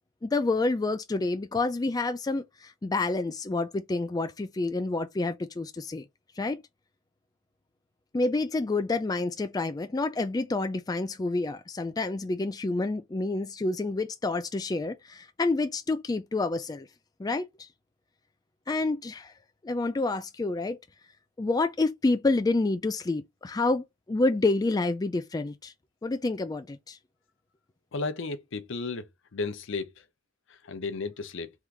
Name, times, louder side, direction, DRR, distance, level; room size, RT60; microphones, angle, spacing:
voice 1, 0.2-6.0 6.4-6.6 8.1-16.9 17.2-17.7 18.7-19.3 19.6-20.8 21.4-25.7 26.0-27.0, left 3 dB, 20° left, 0.3 m, -28 dB
voice 2, 27.9-29.1 29.3-30.0 30.5-31.5, left 3 dB, 65° left, 0.7 m, -34 dB
3.6 x 2.5 x 4.5 m
head